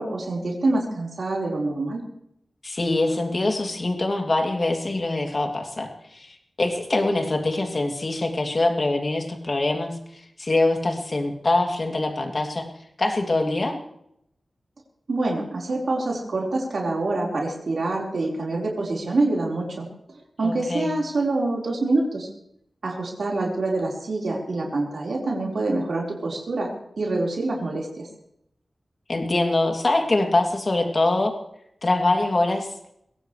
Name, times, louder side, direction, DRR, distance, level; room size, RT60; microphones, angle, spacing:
voice 1, 0.0-2.0 15.1-19.9 20.4-22.3 22.8-26.7 27.0-28.1, right 2 dB, 70° right, -2 dB, 4.6 m, -26 dB
voice 2, 2.6-9.9 10.4-12.7 13.0-13.8 20.4-20.9 29.1-31.3 31.8-32.7, left 2 dB, 45° left, 2 dB, 2.8 m, -24 dB
22.0 x 17.0 x 3.3 m, 0.74 s
wide cardioid pair, 95°, 0 cm